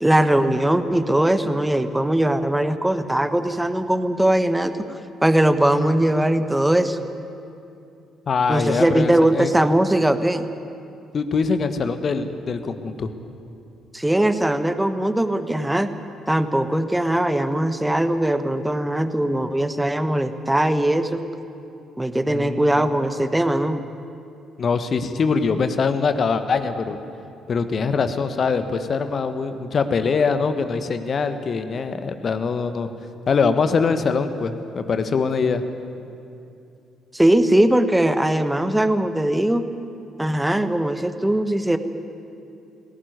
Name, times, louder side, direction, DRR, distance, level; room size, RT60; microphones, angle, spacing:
voice 1, 0.0-7.0 8.5-10.5 13.9-15.9 16.3-21.2 22.0-23.8 37.1-39.7 40.2-41.8, right 1 dB, 10° right, 10 dB, 1.4 m, -20 dB
voice 2, 8.3-9.5 11.1-13.1 22.3-22.9 24.6-27.0 27.5-32.9 33.3-35.6, left 5 dB, 45° left, 9 dB, 1.5 m, -23 dB
20.0 x 17.5 x 9.6 m, 2.6 s
figure-of-eight pair, 45°, 0 cm